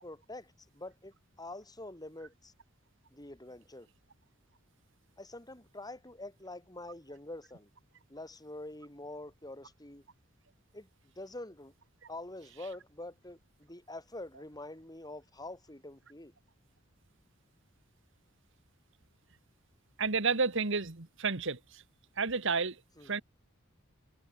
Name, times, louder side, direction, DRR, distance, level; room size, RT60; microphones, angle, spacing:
voice 1, 0.0-2.5 3.1-3.9 5.2-7.7 8.1-10.0 10.7-11.7 12.1-16.3 23.0-23.2, left 2 dB, 20° left, 7.3 m, -46 dB
voice 2, 20.0-21.8 22.2-22.8 23.1-23.2, right 4 dB, 65° right, 1.9 m, -31 dB
head